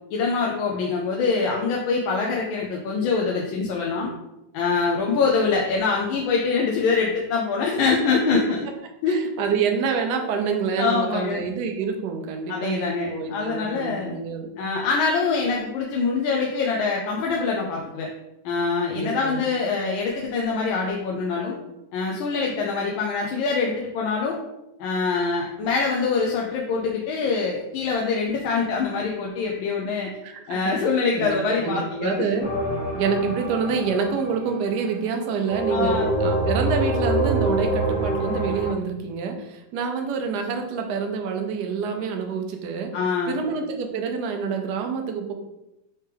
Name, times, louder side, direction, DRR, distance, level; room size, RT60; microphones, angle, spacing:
voice 1, 0.1-4.1 4.5-8.7 9.0-9.2 10.8-11.4 12.5-14.2 14.6-18.1 18.4-21.6 21.9-24.4 24.8-30.1 30.5-32.3 35.7-36.1 42.9-43.4, left 4 dB, 85° left, -1 dB, 1.4 m, -24 dB
voice 2, 9.1-14.5 18.9-19.4 30.2-30.9 31.2-32.5 32.9-42.9 43.3-45.3, right 5 dB, 70° right, 4 dB, 1.1 m, -27 dB
sound 1, 32.4-34.8 35.4-38.7, right 1 dB, 15° left, 1.3 m, -25 dB
4.5 x 3.2 x 3.3 m, 0.91 s
omnidirectional pair, 2.1 m